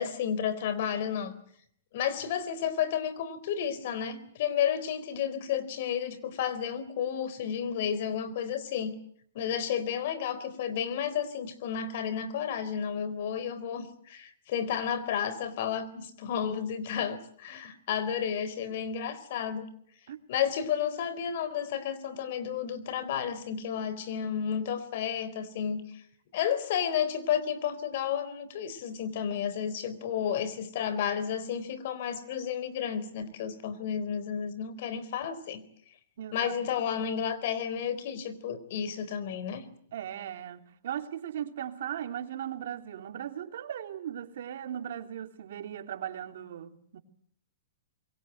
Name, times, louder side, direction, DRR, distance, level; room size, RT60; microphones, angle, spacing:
voice 1, 0.0-1.3 1.9-9.0 9.3-19.7 20.3-25.8 26.3-35.6 36.3-39.7, left 8 dB, 55° left, 4.0 m, -32 dB
voice 2, 36.2-36.5 36.8-36.9 39.9-47.0, right 10 dB, 65° right, 3.0 m, -38 dB
26.5 x 23.0 x 7.9 m
hypercardioid pair, 145°, 0 cm